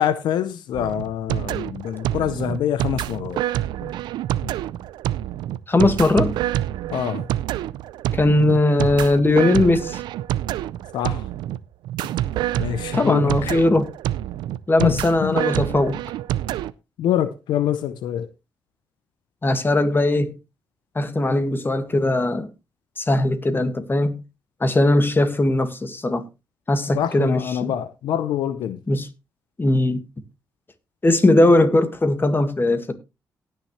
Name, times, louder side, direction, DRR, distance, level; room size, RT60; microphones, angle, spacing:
voice 1, 0.0-3.4 3.8-3.9 4.4-4.5 6.9-7.3 10.9-11.3 12.6-13.5 14.8-14.9 15.2-15.4 17.0-18.3 26.9-28.8, left 10 dB, 80° left, 0.7 m, -25 dB
sound 1, 0.7-16.7, right 13 dB, 85° right, 0.5 m, -27 dB
voice 2, 5.7-6.4 8.1-10.0 12.9-13.9 14.7-16.0 19.4-20.3 21.0-22.5 23.0-24.2 24.6-26.2 26.7-27.7 28.9-29.1 29.6-30.0 31.0-32.9, left 2 dB, 30° left, 1.9 m, -19 dB
18.0 x 6.8 x 3.2 m
supercardioid pair, 60°, 7 cm